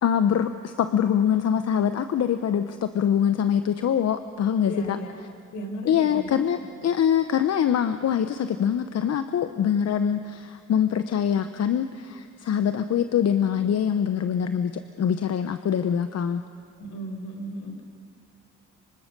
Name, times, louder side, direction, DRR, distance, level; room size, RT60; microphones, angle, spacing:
voice 1, 0.0-5.0 5.8-16.4, left 8 dB, 55° left, 10 dB, 0.9 m, -24 dB
voice 2, 4.6-5.1 5.5-6.3 16.8-17.8, equal, 75° left, 4 dB, 4.9 m, -35 dB
25.5 x 24.5 x 6.7 m, 2.4 s
cardioid pair, 90°, 30 cm